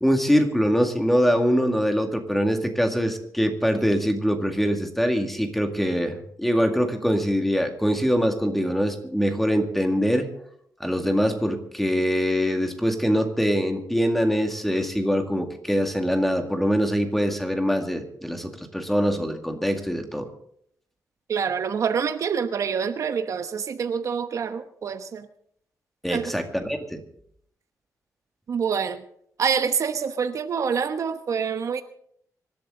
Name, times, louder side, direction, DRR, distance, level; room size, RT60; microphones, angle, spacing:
voice 1, 0.0-10.3 10.8-20.3 26.0-27.0, equal, 5° left, 5 dB, 2.0 m, -23 dB
voice 2, 21.3-25.3 26.1-26.2 28.5-29.0 29.4-31.8, right 6 dB, 55° right, 9 dB, 0.9 m, -26 dB
25.5 x 12.0 x 3.8 m, 0.67 s
cardioid pair, 130°, 6 cm